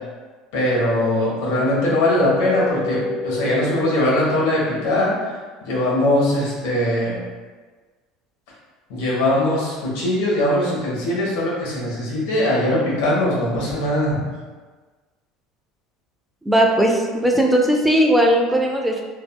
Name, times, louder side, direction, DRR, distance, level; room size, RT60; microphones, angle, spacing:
voice 1, 0.5-3.0 3.2-5.1 5.7-7.2 8.9-14.2, left 1 dB, 80° left, -5 dB, 1.0 m, -21 dB
sound 1, 1.8-5.3, left 3 dB, 85° right, 1.5 m, -28 dB
voice 2, 16.4-19.0, equal, 5° right, 1 dB, 0.3 m, -17 dB
3.4 x 2.0 x 2.2 m, 1.4 s
supercardioid pair, 105°, 0 cm